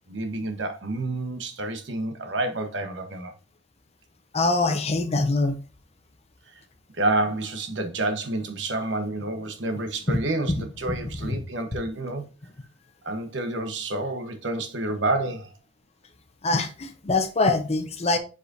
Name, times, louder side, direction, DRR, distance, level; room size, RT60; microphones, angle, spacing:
voice 1, 0.1-3.3 7.0-12.3 13.0-15.5, right 2 dB, 70° right, 1.1 m, -29 dB
voice 2, 4.3-5.5 10.9-11.0 11.3-11.4 16.4-18.2, left 3 dB, 35° left, 0.8 m, -23 dB
7.3 x 4.9 x 2.6 m
head